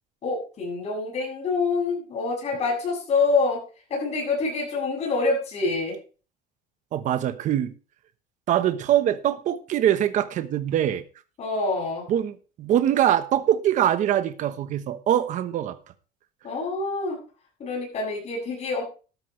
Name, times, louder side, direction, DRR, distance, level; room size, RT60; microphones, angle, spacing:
voice 1, 0.2-3.6 3.9-6.0 11.4-12.1 16.4-17.2 17.6-18.8, left 3 dB, 35° left, -1 dB, 7.5 m, -26 dB
voice 2, 6.9-7.7 8.5-11.0 12.1-12.3 12.6-15.8, right 11 dB, 45° right, 11 dB, 1.2 m, -23 dB
13.0 x 12.0 x 3.3 m, 0.36 s
cardioid pair, 145°, 19 cm